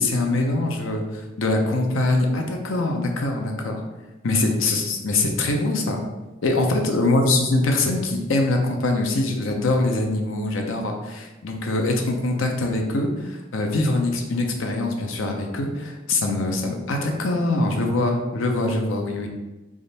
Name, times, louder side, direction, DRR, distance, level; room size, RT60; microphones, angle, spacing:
voice 1, 0.0-3.8 4.2-6.0 6.4-19.3, left 2 dB, 80° left, 3 dB, 0.6 m, -23 dB
3.5 x 2.5 x 4.0 m, 1.1 s
head